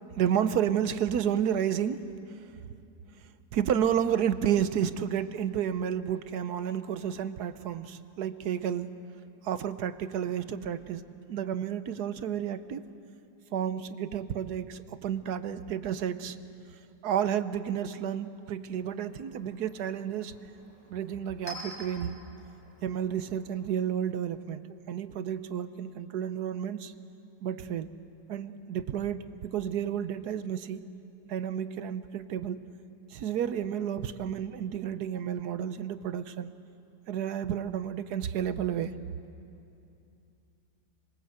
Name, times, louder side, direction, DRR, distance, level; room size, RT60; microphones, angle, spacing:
voice 1, 0.1-2.0 3.5-8.9 9.4-11.0 11.3-12.8 13.5-16.4 17.0-20.3 20.9-22.2 22.8-24.6 24.9-26.9 27.4-27.9 28.3-30.8 31.3-32.6 33.1-36.5 37.1-38.9, right 9 dB, 65° right, 1.3 m, -31 dB
Chink clink, 18.5-24.0, equal, 15° left, 5.9 m, -49 dB
26.5 x 22.5 x 8.0 m
omnidirectional pair, 1.9 m